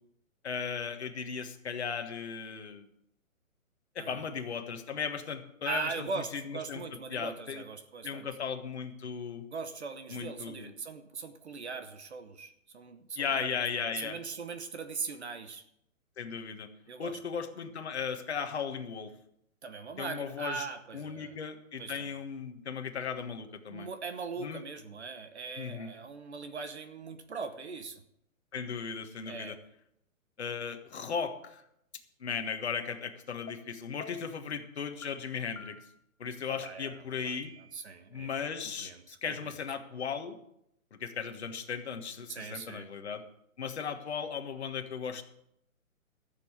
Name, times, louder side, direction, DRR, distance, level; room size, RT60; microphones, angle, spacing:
voice 1, 0.4-2.9 3.9-6.8 7.1-7.6 8.0-9.4 10.1-10.7 13.2-14.2 16.2-16.7 17.0-19.1 20.0-20.7 20.9-23.9 24.4-24.6 25.6-25.9 28.5-29.6 30.4-31.6 32.2-35.8 36.2-37.5 38.1-40.4 40.9-43.2 43.6-45.2, left 6 dB, 50° left, 6 dB, 1.5 m, -36 dB
voice 2, 4.0-4.3 5.7-8.3 9.5-13.5 13.8-15.6 16.9-17.2 19.6-21.4 21.8-22.1 23.7-28.0 29.3-29.6 36.5-37.4 37.7-38.3 38.6-39.4 42.3-42.9, right 4 dB, 50° right, 10 dB, 1.1 m, -40 dB
sound 1, 33.5-33.6 34.0-34.4 35.0-35.1 35.6-36.0 36.7-36.8 37.3-37.9, left 4 dB, 80° left, 1.5 m, -48 dB
13.0 x 7.1 x 8.1 m, 0.76 s
hypercardioid pair, 175°, 42 cm